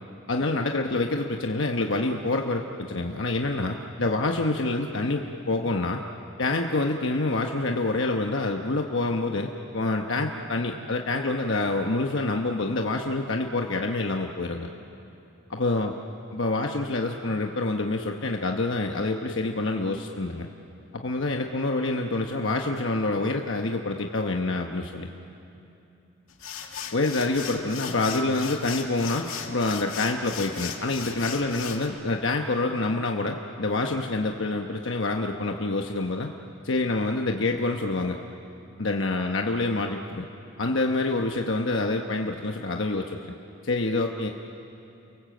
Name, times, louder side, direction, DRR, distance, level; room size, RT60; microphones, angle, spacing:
voice 1, 0.3-6.0 6.4-14.7 15.5-15.9 16.3-20.5 20.9-25.1 26.9-36.3 36.6-38.2 38.8-40.2 40.6-43.2 43.6-44.3, left 2 dB, 65° left, 3 dB, 1.1 m, -27 dB
sound 1, 26.3-31.9, left 8 dB, 80° left, 2.3 m, -37 dB
29.5 x 23.0 x 7.9 m, 2.8 s
head